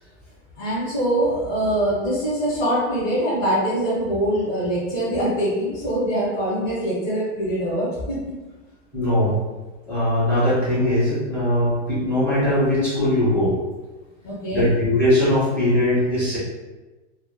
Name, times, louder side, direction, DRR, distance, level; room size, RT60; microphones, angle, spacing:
voice 1, 0.6-8.2 14.2-14.7, right 1 dB, 35° left, -10 dB, 1.1 m, -23 dB
voice 2, 8.9-9.3 9.9-13.5 14.5-16.4, left 1 dB, 5° left, -11 dB, 1.5 m, -20 dB
3.4 x 2.0 x 2.2 m, 1.2 s
supercardioid pair, 155°, 36 cm